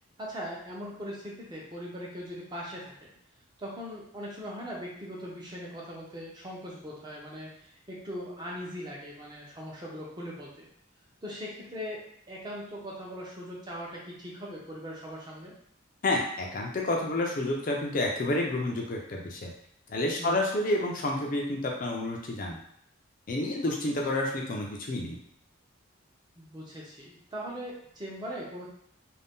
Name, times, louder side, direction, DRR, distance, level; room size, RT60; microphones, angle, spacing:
voice 1, 0.2-3.1 3.6-10.7 11.2-15.5 20.2-20.4 26.4-28.7, equal, 20° right, -4 dB, 0.6 m, -40 dB
voice 2, 16.0-19.5 19.9-22.6 23.3-25.2, left 1 dB, 40° left, 0 dB, 0.4 m, -29 dB
2.6 x 2.2 x 3.5 m, 0.69 s
head